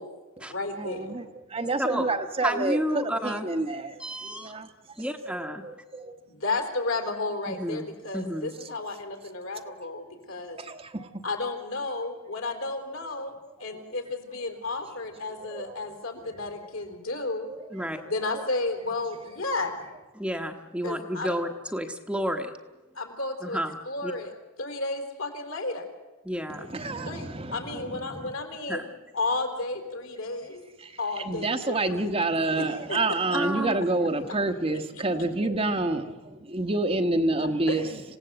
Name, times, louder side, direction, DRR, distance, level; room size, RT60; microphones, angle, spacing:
voice 1, 0.0-1.0 6.3-10.6 11.2-13.3 13.6-17.5 18.0-19.7 20.8-21.3 22.9-23.6 23.9-24.3 24.6-25.9 27.1-28.9 29.1-30.6 31.0-32.1 32.6-33.0 33.3-33.4 37.4-37.8, left 3 dB, 70° left, 3.9 m, -32 dB
voice 2, 0.8-1.2 1.5-4.0 4.3-4.7 5.3-6.2 9.7-9.8 10.6-11.1 13.7-13.8 15.5-15.8 17.5-17.8 26.5-28.3 30.8-38.0, right 2 dB, 25° right, 1.2 m, -29 dB
voice 3, 2.4-3.5 4.0-4.5 5.0-5.6 7.5-7.8 8.1-8.5 17.7-18.0 20.1-22.5 23.4-24.1 26.2-26.7 28.7-28.9 33.3-33.8, equal, 5° right, 1.2 m, -31 dB
27.0 x 17.0 x 8.0 m
head